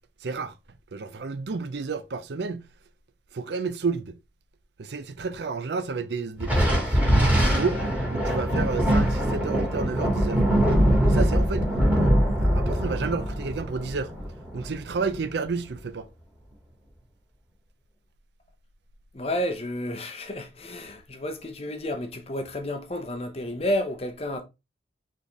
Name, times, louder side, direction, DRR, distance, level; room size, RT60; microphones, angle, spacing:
voice 1, 0.2-0.6 0.9-2.7 3.3-4.2 4.8-7.8 8.1-10.4 11.0-11.7 11.9-12.1 12.4-14.1 14.5-16.1, right 4 dB, 70° right, 0.5 m, -31 dB
Thunder, 6.4-15.2, equal, 10° right, 1.7 m, -23 dB
voice 2, 19.1-24.4, left 1 dB, 35° left, 0.7 m, -31 dB
4.1 x 3.5 x 3.0 m
head